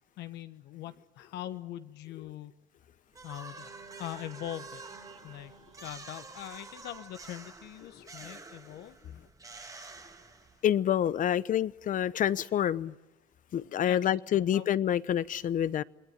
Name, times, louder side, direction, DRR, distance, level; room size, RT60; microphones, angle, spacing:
voice 1, 0.2-2.6 3.2-4.8 5.2-5.5 5.8-9.0 13.9-14.7, left 13 dB, 85° left, 1.4 m, -42 dB
sound 1, 3.1-10.8, right 3 dB, 20° right, 1.7 m, -49 dB
sound 2, 3.5-7.9, right 6 dB, 40° right, 4.0 m, -53 dB
voice 2, 10.6-12.9 13.5-15.8, left 10 dB, 50° left, 0.9 m, -27 dB
28.0 x 20.0 x 9.1 m
cardioid pair, 110°, 17 cm